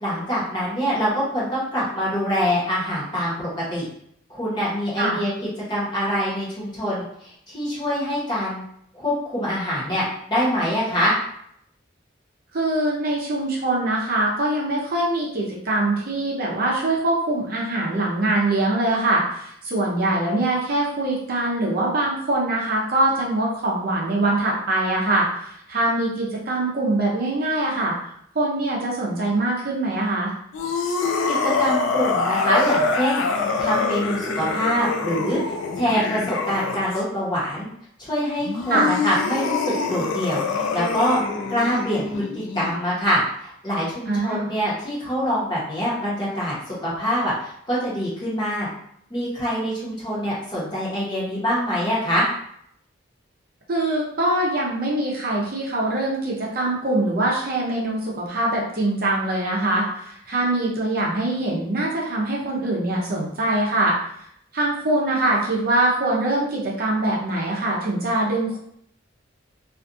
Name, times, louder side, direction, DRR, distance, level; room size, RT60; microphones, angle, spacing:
voice 1, 0.0-3.9 4.3-5.3 5.7-8.6 8.9-11.1 31.2-33.2 33.6-35.4 35.7-37.7 38.0-41.2 41.5-48.7 49.1-52.3, equal, 20° left, -8 dB, 1.0 m, -25 dB
voice 2, 12.5-27.9 28.3-30.3 38.7-38.9 44.1-44.5 53.7-64.0 64.5-68.6, right 2 dB, 50° right, -4 dB, 0.6 m, -23 dB
sound 1, 30.5-37.0 38.4-42.8, left 4 dB, 75° left, 0.3 m, -25 dB
2.5 x 2.4 x 2.5 m, 0.68 s
head